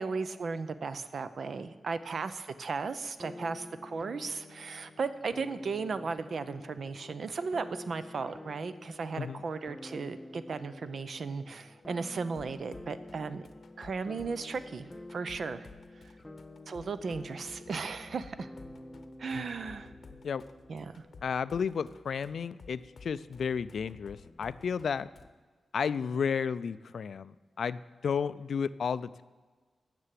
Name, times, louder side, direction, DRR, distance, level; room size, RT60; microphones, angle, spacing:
voice 1, 0.0-13.5 13.8-15.7 16.7-18.5 19.2-19.9 20.7-21.0, right 4 dB, 60° right, 12 dB, 0.6 m, -36 dB
sound 1, 3.2-21.0, left 1 dB, 10° left, 0.6 m, -49 dB
sound 2, 6.5-25.3, left 4 dB, 55° left, 0.8 m, -56 dB
voice 2, 21.2-25.1 25.7-29.2, left 6 dB, 75° left, 16 dB, 0.3 m, -32 dB
9.7 x 6.8 x 7.6 m, 1.4 s
wide cardioid pair, 110°, 0 cm